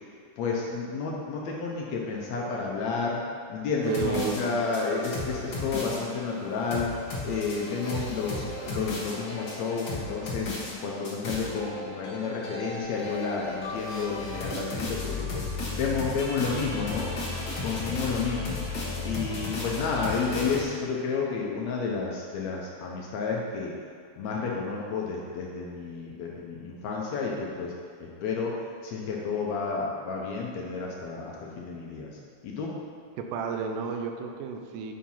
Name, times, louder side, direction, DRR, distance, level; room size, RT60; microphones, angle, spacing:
voice 1, 0.4-3.2 3.5-6.9 7.2-10.5 10.8-17.1 17.6-18.6 19.1-23.7 24.2-27.7 28.0-28.5 28.8-32.1 32.4-32.7, left 5 dB, 70° left, -2 dB, 1.9 m, -31 dB
sound 1, 3.8-20.6, left 2 dB, 50° left, 1.4 m, -35 dB
voice 2, 3.9-4.4 19.0-19.1 33.2-34.9, right 6 dB, 90° right, 4 dB, 2.2 m, -32 dB
7.5 x 4.4 x 5.5 m, 2.1 s
omnidirectional pair, 3.6 m